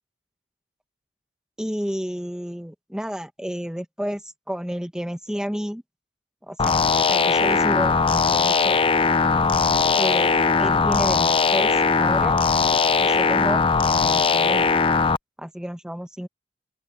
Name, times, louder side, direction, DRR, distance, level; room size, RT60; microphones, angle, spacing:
voice 1, 1.6-5.8 6.5-6.8 7.1-8.8 9.9-12.4 13.0-13.6 14.0-14.7 15.4-16.3, equal, 5° right, 1.1 m, -31 dB
sound 1, 6.6-15.2, left 5 dB, 30° left, 0.6 m, -19 dB
open air
head